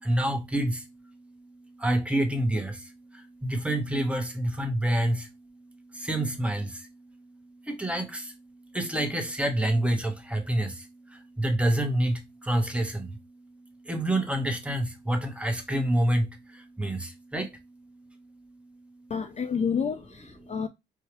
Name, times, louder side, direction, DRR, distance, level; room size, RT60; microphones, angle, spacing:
voice 1, 0.0-0.8 1.8-2.7 3.4-5.2 6.0-6.7 7.7-8.2 8.7-10.7 11.4-12.2 12.5-13.1 13.9-16.2 16.8-17.5, right 1 dB, 5° right, 1.1 m, -26 dB
voice 2, 19.1-20.7, left 6 dB, 35° left, 0.4 m, -29 dB
4.7 x 2.4 x 3.0 m
cardioid pair, 90°, 20 cm